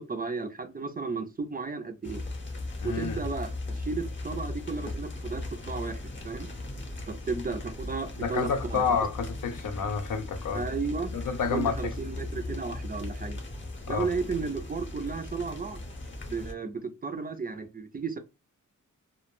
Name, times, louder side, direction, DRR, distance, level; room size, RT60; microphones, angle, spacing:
voice 1, 0.0-2.2 2.8-6.5 7.1-9.0 10.5-11.1 11.5-13.4 13.9-15.8 16.2-18.2, right 4 dB, 30° right, 0.3 m, -34 dB
sound 1, 2.0-16.5, left 2 dB, 35° left, 0.7 m, -38 dB
voice 2, 2.8-3.2 8.2-10.7 11.1-11.9 13.9-14.1, left 5 dB, 80° left, 0.6 m, -29 dB
2.2 x 2.1 x 3.0 m
wide cardioid pair, 125°, 32 cm